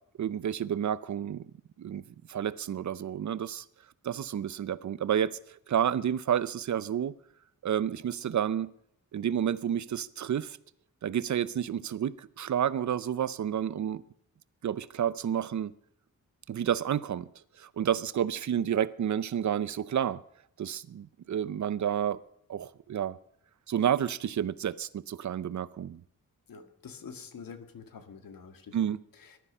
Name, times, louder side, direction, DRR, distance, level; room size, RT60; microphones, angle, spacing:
voice 1, 0.2-1.5 1.8-3.6 4.0-5.4 5.7-7.1 7.6-8.7 9.1-10.6 11.0-14.0 14.6-15.7 16.5-17.3 17.6-20.2 20.6-22.2 22.5-23.2 23.7-26.0 28.7-29.0, right 9 dB, 55° right, 0.6 m, -30 dB
voice 2, 26.5-28.9 29.2-29.4, left 6 dB, 75° left, 2.1 m, -46 dB
20.5 x 12.5 x 5.5 m
wide cardioid pair, 170°, 34 cm